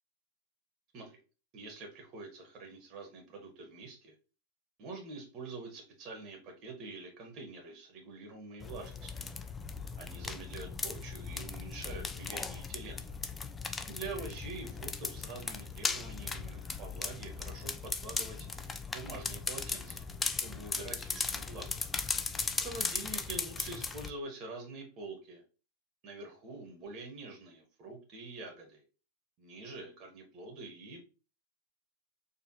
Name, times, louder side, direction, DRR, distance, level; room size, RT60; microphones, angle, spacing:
voice 1, 1.5-4.1 4.8-9.1 10.0-13.1 13.9-18.5 18.9-20.0 20.3-21.8 22.6-25.4 26.0-28.8 29.4-31.0, right 3 dB, 35° right, 3 dB, 1.2 m, -46 dB
sound 1, 8.6-24.1, left 4 dB, 15° left, 0.4 m, -38 dB
4.5 x 3.2 x 2.8 m, 0.34 s
figure-of-eight pair, 90°, 0 cm